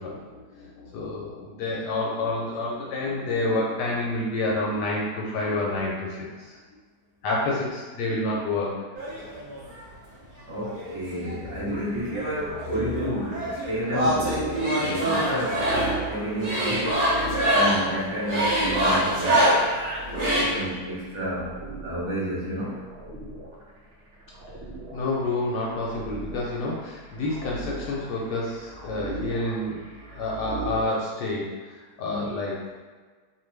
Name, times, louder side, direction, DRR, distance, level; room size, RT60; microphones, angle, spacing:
voice 1, 0.0-6.6 7.2-8.8 24.9-29.8 30.1-32.5, left 2 dB, 80° left, -3 dB, 1.2 m, -29 dB
sound 1, 8.9-9.8 10.6-11.8 12.1-20.4, equal, 85° right, 0.3 m, -25 dB
voice 2, 10.4-14.3 14.8-15.6 16.1-17.1 17.5-19.4 20.3-21.5 21.8-22.8 32.0-32.3, equal, 30° right, -8 dB, 0.5 m, -30 dB
sound 2, 11.7-30.9, right 2 dB, 60° right, 0.8 m, -38 dB
2.8 x 2.3 x 3.2 m, 1.4 s
omnidirectional pair, 1.9 m